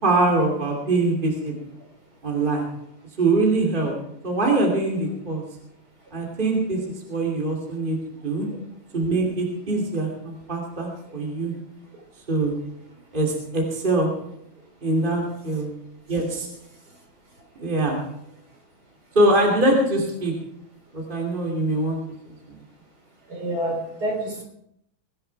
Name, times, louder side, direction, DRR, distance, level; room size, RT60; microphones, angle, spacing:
voice 1, 0.0-1.5 2.2-2.7 3.2-3.9 4.2-5.4 6.1-6.8 7.1-8.0 8.2-8.5 8.9-11.5 12.3-12.6 13.1-14.1 14.8-15.7 16.1-16.5 17.6-18.0 19.1-20.3 20.9-22.0, right 2 dB, 25° right, -1 dB, 2.8 m, -23 dB
voice 2, 23.3-24.4, right 1 dB, 50° right, 1 dB, 4.2 m, -28 dB
22.5 x 10.5 x 4.6 m, 0.76 s
omnidirectional pair, 2.2 m